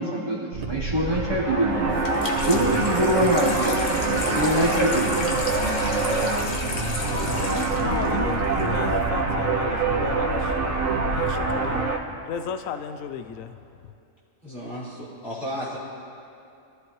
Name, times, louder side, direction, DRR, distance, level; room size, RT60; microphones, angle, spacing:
voice 1, 0.0-2.0 2.5-5.5, equal, 20° right, -2 dB, 1.0 m, -25 dB
Wind, 0.5-11.8, right 2 dB, 55° right, 1.5 m, -32 dB
sound 1, 0.9-12.0, right 3 dB, 90° right, 1.7 m, -26 dB
Water tap faucet / Sink (filling or washing), 1.9-9.0, left 2 dB, 35° left, 1.1 m, -32 dB
voice 2, 6.9-10.6 11.1-11.9 12.3-13.9, left 7 dB, 85° left, 9 dB, 1.0 m, -35 dB
voice 3, 14.4-15.8, equal, 55° left, -10 dB, 4.4 m, -34 dB
23.0 x 13.5 x 3.1 m, 2.6 s
omnidirectional pair, 1.4 m